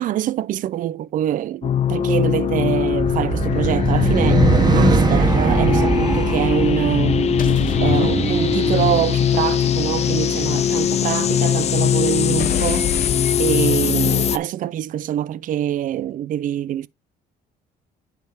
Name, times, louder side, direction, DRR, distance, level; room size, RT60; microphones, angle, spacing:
voice 1, 0.0-7.2 7.8-13.0 13.4-16.9, right 11 dB, 50° right, 0.4 m, -24 dB
sound 1, 1.6-14.4, left 9 dB, 40° left, 0.5 m, -20 dB
sound 2, 2.7-9.2, right 4 dB, 25° right, 1.1 m, -21 dB
sound 3, 3.4-4.1 7.4-8.9 12.4-14.0, left 10 dB, 55° left, 1.1 m, -29 dB
9.6 x 3.5 x 4.7 m
cardioid pair, 110°, 17 cm